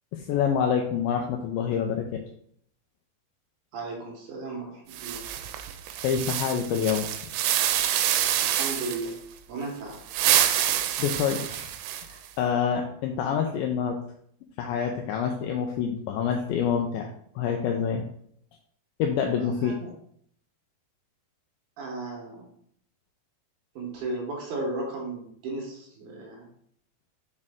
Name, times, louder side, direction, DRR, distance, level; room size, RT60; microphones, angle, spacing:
voice 1, 0.1-2.2 6.0-7.1 10.4-10.7 11.0-11.8 12.1-14.0 14.6-17.1 17.4-18.1 19.0-19.8, left 7 dB, 80° left, 3 dB, 2.1 m, -27 dB
voice 2, 3.7-5.3 8.4-10.0 19.4-19.9 21.8-22.5 23.8-26.5, right 2 dB, 65° right, 0 dB, 2.1 m, -35 dB
sound 1, 4.9-9.1 9.9-12.3, right 11 dB, 85° right, 2.5 m, -27 dB
6.0 x 4.4 x 3.6 m, 0.66 s
omnidirectional pair, 4.5 m